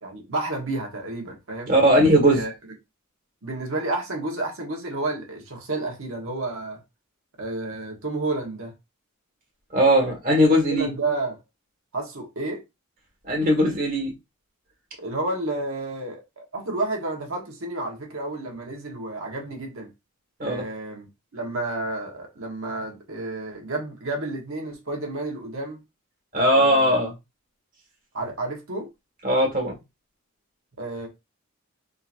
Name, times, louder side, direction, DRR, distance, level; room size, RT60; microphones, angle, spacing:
voice 1, 0.0-1.7 2.3-2.5 3.4-6.8 7.4-8.7 10.7-11.4 11.9-12.6 15.0-19.9 20.4-21.1 21.3-25.8 26.5-27.0 28.1-28.9 30.8-31.1, right 2 dB, 70° right, 1.2 m, -31 dB
voice 2, 1.7-2.4 9.7-10.9 13.2-14.1 20.4-20.6 26.3-27.1 29.2-29.7, equal, 40° right, 1.7 m, -19 dB
3.8 x 2.8 x 2.5 m
head